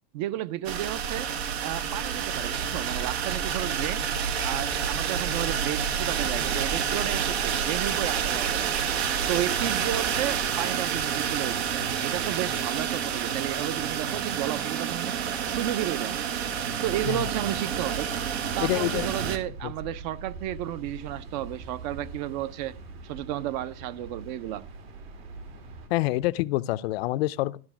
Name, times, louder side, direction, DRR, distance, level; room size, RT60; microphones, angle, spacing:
voice 1, 0.1-1.3 1.6-4.0 4.4-8.7 9.3-15.2 15.5-16.2 16.8-18.1 18.5-22.8 23.0-24.7, right 13 dB, 45° right, 0.5 m, -32 dB
sound 1, 0.6-19.4, right 7 dB, 90° right, 1.6 m, -29 dB
voice 2, 18.6-19.1 19.6-19.7 25.9-27.6, left 18 dB, 70° left, 0.5 m, -27 dB
sound 2, 18.9-25.9, right 3 dB, 70° right, 2.7 m, -43 dB
12.0 x 6.3 x 6.0 m
supercardioid pair, 170°, 31 cm